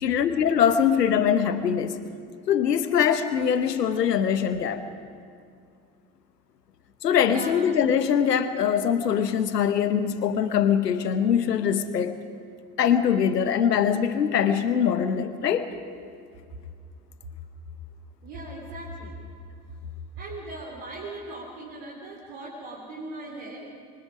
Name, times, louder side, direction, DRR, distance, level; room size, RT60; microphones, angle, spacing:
voice 1, 0.0-2.0 2.5-4.8 7.0-12.2 12.8-15.7, left 8 dB, 85° left, 10 dB, 1.1 m, -23 dB
voice 2, 7.2-7.7 18.2-19.2 20.2-23.6, right 2 dB, 65° right, -3 dB, 3.7 m, -39 dB
25.5 x 23.5 x 5.1 m, 2.3 s
figure-of-eight pair, 55°, 47 cm